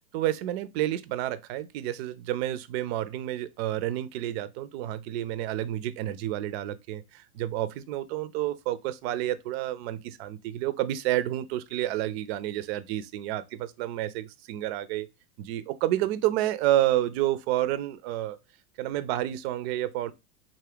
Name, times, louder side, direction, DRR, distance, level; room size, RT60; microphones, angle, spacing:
voice 1, 0.1-15.1 15.4-18.4 18.8-20.1, right 13 dB, 50° right, 0.4 m, -29 dB
3.5 x 2.1 x 3.5 m
hypercardioid pair, 100°, 44 cm